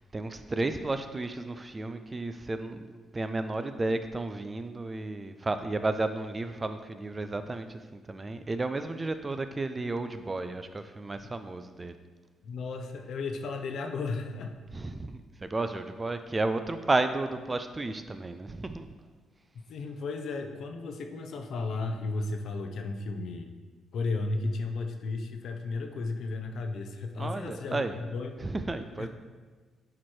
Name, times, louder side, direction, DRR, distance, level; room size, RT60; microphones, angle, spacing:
voice 1, 0.0-12.0 14.7-18.9 27.2-28.0 28.4-29.1, right 2 dB, 25° right, 9 dB, 0.3 m, -32 dB
voice 2, 12.4-14.5 19.7-23.5 23.9-28.5 29.0-29.1, left 3 dB, 65° left, 6 dB, 0.6 m, -34 dB
8.6 x 3.1 x 4.4 m, 1.4 s
cardioid pair, 90°, 0 cm